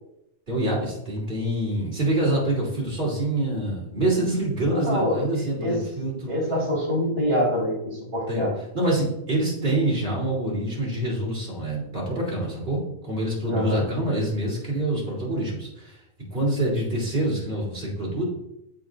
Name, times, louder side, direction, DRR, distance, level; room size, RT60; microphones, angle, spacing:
voice 1, 0.5-6.3 8.3-8.5 8.7-16.0 16.3-18.2, right 1 dB, 40° right, -4 dB, 3.3 m, -26 dB
voice 2, 4.7-5.2 5.6-5.7 6.3-8.5 13.5-13.9, equal, 25° right, -6 dB, 3.2 m, -25 dB
13.5 x 5.0 x 2.6 m, 0.80 s
omnidirectional pair, 1.3 m